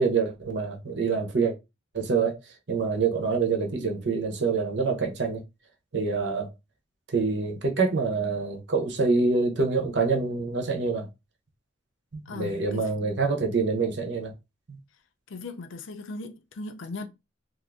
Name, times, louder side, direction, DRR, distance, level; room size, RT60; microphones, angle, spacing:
voice 1, 0.0-1.5 1.9-2.4 2.7-5.4 5.9-6.5 7.1-11.1 12.1-14.3 14.7-14.8, right 4 dB, 65° right, 0.8 m, -26 dB
voice 2, 12.3-13.0 15.3-17.0, left 3 dB, 80° left, 0.5 m, -38 dB
2.6 x 2.5 x 3.4 m
head